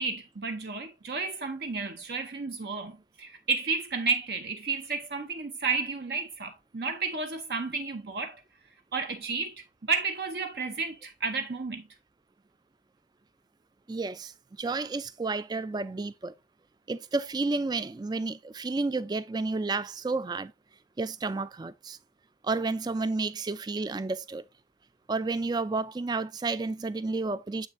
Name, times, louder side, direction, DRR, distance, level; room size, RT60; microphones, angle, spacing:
voice 1, 0.0-8.4 8.9-9.5 9.8-11.9, right 4 dB, 55° right, 0.7 m, -32 dB
voice 2, 13.9-14.3 14.6-16.3 16.9-20.5 21.0-22.0 22.4-24.4 25.1-27.7, right 3 dB, 20° right, 0.3 m, -31 dB
7.3 x 6.4 x 2.6 m
head